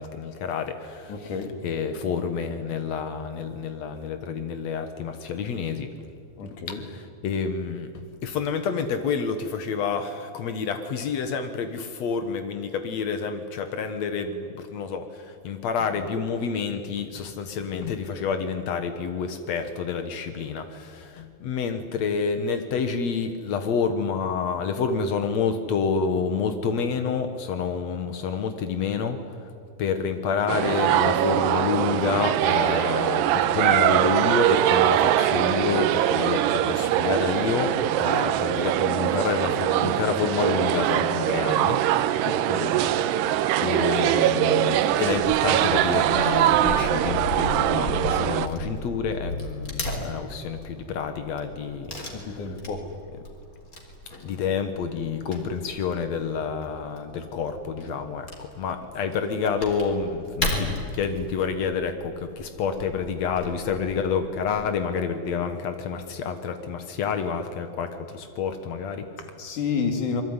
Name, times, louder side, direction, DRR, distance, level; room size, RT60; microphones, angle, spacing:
voice 1, 0.0-5.9 6.7-29.5 29.8-37.7 38.0-41.8 43.6-52.6 54.2-69.3, left 6 dB, 80° left, 8 dB, 1.5 m, -28 dB
voice 2, 1.1-1.5 6.4-6.8 42.2-42.8 52.1-52.8 69.4-70.2, left 5 dB, 50° left, 6 dB, 3.5 m, -30 dB
sound 1, 30.5-48.5, right 12 dB, 75° right, 2.8 m, -22 dB
Wood / Tearing, 45.1-64.7, left 1 dB, 20° left, 3.8 m, -37 dB
27.0 x 22.5 x 9.7 m, 2.3 s
omnidirectional pair, 5.2 m